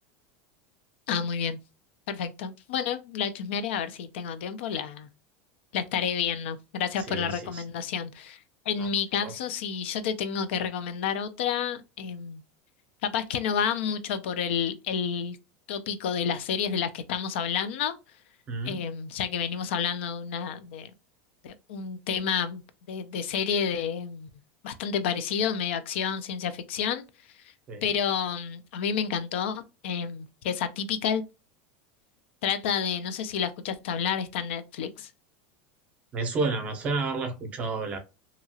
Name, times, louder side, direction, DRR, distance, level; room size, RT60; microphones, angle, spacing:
voice 1, 1.1-1.6 2.1-5.1 5.7-8.4 8.7-12.4 13.0-15.4 15.7-18.0 18.6-20.9 21.4-22.6 22.9-24.3 24.6-27.0 27.8-31.2 32.4-35.1, left 7 dB, 75° left, 0.4 m, -30 dB
voice 2, 7.0-7.6 8.8-8.9 9.2-9.3 18.5-18.8 27.7-27.9 36.1-38.0, right 3 dB, 20° right, 0.6 m, -31 dB
2.8 x 2.3 x 2.7 m
supercardioid pair, 175°, 6 cm